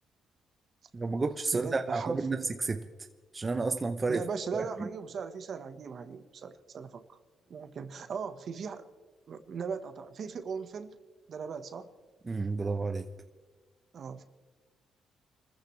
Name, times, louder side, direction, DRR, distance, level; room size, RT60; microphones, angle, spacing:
voice 1, 0.9-2.8 3.3-4.2 4.5-4.9 12.3-13.1, right 3 dB, 25° right, 7 dB, 0.8 m, -31 dB
voice 2, 1.5-2.3 4.1-7.2 7.5-8.9 9.3-11.0 11.3-11.9 13.9-14.2, right 6 dB, 55° right, 9 dB, 1.3 m, -38 dB
29.0 x 14.5 x 3.3 m, 1.4 s
cardioid pair, 90°, 0 cm